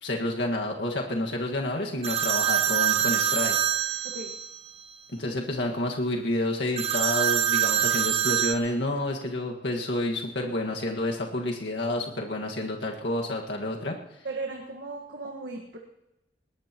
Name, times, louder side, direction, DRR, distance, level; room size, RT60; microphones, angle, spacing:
voice 1, 0.0-3.6 5.1-14.0, left 1 dB, 90° left, 0 dB, 1.8 m, -29 dB
sound 1, 2.0-4.6 6.8-8.5, right 10 dB, 35° right, 1.1 m, -25 dB
voice 2, 4.0-4.3 14.2-15.8, right 3 dB, 75° right, 0 dB, 1.7 m, -36 dB
21.5 x 19.0 x 3.0 m, 0.92 s
head